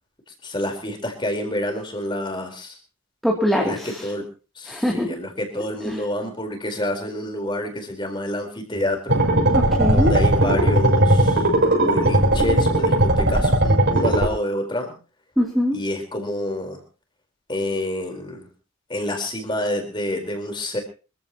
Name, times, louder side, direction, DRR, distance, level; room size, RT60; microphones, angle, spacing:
voice 1, 0.4-2.8 3.6-4.2 4.5-9.3 9.9-11.5 11.8-14.9 15.7-16.8 17.5-18.5 18.9-20.8, left 1 dB, 20° left, 4 dB, 4.4 m, -28 dB
voice 2, 3.2-4.1 4.7-5.1 5.8-6.0 9.5-10.1 15.4-15.8, equal, ahead, -3 dB, 2.9 m, -22 dB
sound 1, 9.1-14.3, right 1 dB, 55° right, 7.5 m, -18 dB
26.0 x 15.0 x 3.0 m, 0.35 s
head